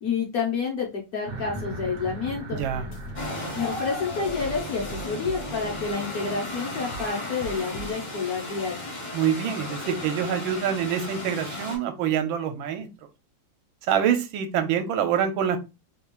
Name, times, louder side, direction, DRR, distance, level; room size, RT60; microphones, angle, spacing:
voice 1, 0.0-2.6 3.5-8.8, left 5 dB, 60° left, 0 dB, 1.1 m, -29 dB
sound 1, 1.2-8.7, right 2 dB, 60° right, 0.8 m, -41 dB
voice 2, 2.5-2.9 9.1-12.9 13.9-15.6, right 8 dB, 80° right, 7 dB, 1.3 m, -25 dB
sound 2, 2.6-3.3 3.6-6.0 6.2-7.9, equal, 85° left, 1.4 m, -41 dB
sound 3, 3.2-11.8, left 1 dB, 35° left, 0.8 m, -35 dB
3.4 x 2.4 x 2.9 m, 0.26 s
omnidirectional pair, 2.2 m